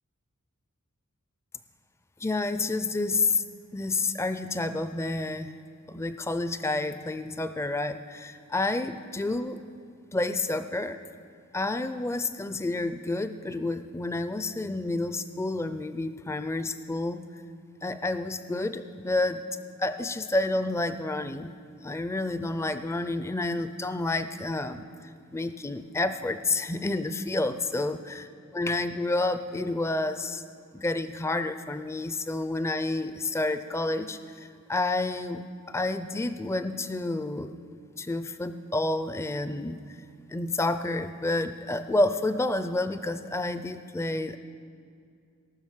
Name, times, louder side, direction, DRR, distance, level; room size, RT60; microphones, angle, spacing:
voice 1, 2.2-3.4 3.7-5.5 5.9-9.6 10.1-11.0 11.5-17.2 17.8-19.4 19.8-21.5 21.8-24.8 25.3-28.0 28.5-30.4 30.7-37.5 38.0-39.8 40.3-44.4, left 2 dB, 10° left, 11 dB, 0.4 m, -29 dB
18.5 x 6.2 x 7.2 m, 2.4 s
head